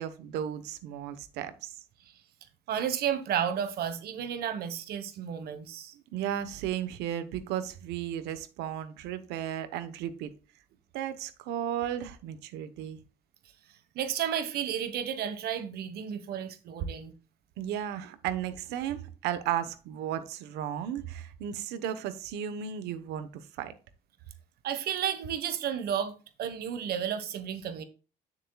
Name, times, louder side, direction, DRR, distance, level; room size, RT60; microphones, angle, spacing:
voice 1, 0.0-1.7 6.1-10.3 10.9-13.0 17.6-23.7, right 10 dB, 90° right, 1.1 m, -34 dB
voice 2, 2.7-5.9 13.9-17.1 24.6-27.8, right 9 dB, 65° right, 1.3 m, -32 dB
9.6 x 7.4 x 2.3 m
cardioid pair, 110°, 17 cm